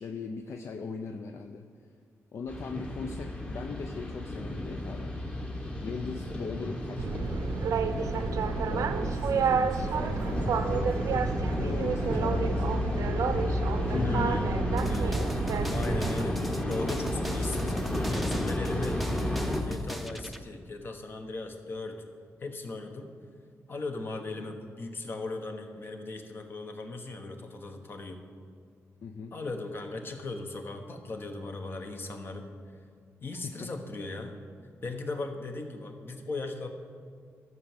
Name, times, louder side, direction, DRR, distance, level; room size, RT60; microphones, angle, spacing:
voice 1, 0.0-1.7 2.3-5.2 5.8-7.4 7.9-10.9 11.5-13.0 13.9-14.5 29.0-29.3 33.3-33.7, left 5 dB, 60° left, 6 dB, 0.6 m, -39 dB
sound 1, 2.5-19.6, left 1 dB, 20° left, 1.5 m, -32 dB
Boat Water vehicle, 7.0-16.2, right 6 dB, 80° right, 0.6 m, -30 dB
voice 2, 13.9-14.5 14.8-15.2 15.7-22.0 22.4-23.1 23.7-28.2 29.3-32.5 33.2-34.4 34.8-36.7, left 3 dB, 40° left, 5 dB, 1.2 m, -37 dB
sound 2, 14.8-20.4, equal, ahead, 0.7 m, -40 dB
12.0 x 6.2 x 7.4 m, 2.2 s
wide cardioid pair, 120°, 5 cm